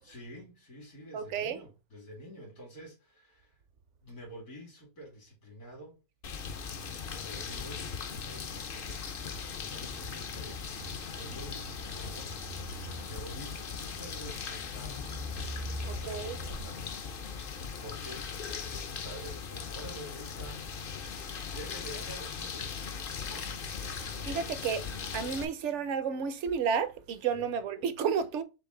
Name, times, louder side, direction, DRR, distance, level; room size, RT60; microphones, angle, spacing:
voice 1, 0.0-3.6 4.0-6.0 7.0-12.3 12.7-15.1 15.7-17.0 17.3-22.7 23.2-23.6 27.3-27.6, right 1 dB, 80° left, 2.7 m, -49 dB
voice 2, 1.1-1.6 15.8-16.4 24.3-24.8 25.1-28.4, right 6 dB, 65° right, 0.8 m, -31 dB
sound 1, 6.2-25.4, left 6 dB, 55° left, 0.6 m, -39 dB
sound 2, 6.3-16.7, equal, 20° right, 0.4 m, -46 dB
5.8 x 2.4 x 3.7 m
omnidirectional pair, 1.6 m